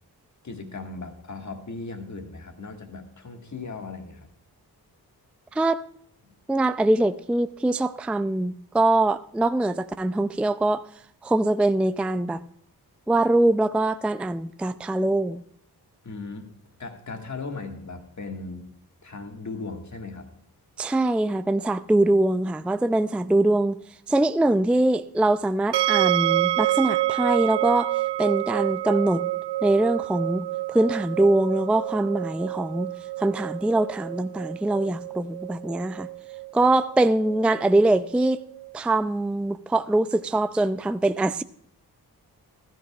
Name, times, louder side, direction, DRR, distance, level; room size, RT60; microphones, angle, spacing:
voice 1, 0.4-4.3 16.0-16.5 16.8-18.6 19.0-20.3, left 3 dB, 45° left, 1.9 m, -37 dB
voice 2, 5.5-5.8 6.5-10.8 11.2-12.4 13.1-15.4 20.8-23.8 24.1-29.3 29.6-32.9 33.2-36.1 36.5-38.4 38.7-41.4, right 2 dB, 5° right, 0.4 m, -23 dB
sound 1, 25.7-38.7, right 17 dB, 85° right, 0.5 m, -28 dB
15.0 x 13.0 x 2.4 m
cardioid pair, 65°, 39 cm